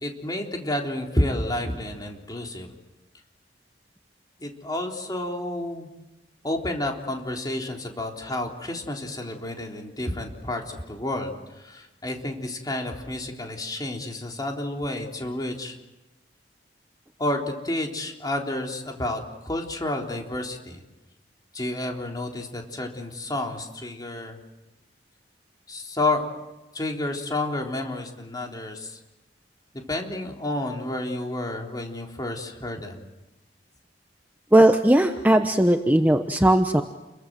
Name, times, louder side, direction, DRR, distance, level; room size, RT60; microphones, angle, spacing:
voice 1, 0.0-2.7 4.4-5.9 6.4-15.8 17.2-20.8 21.5-24.4 25.7-26.3 26.7-29.0 29.9-33.0, left 1 dB, 20° left, 1 dB, 3.7 m, -30 dB
voice 2, 34.5-36.8, right 1 dB, 10° right, 6 dB, 1.0 m, -18 dB
30.0 x 23.0 x 7.7 m, 1.0 s
head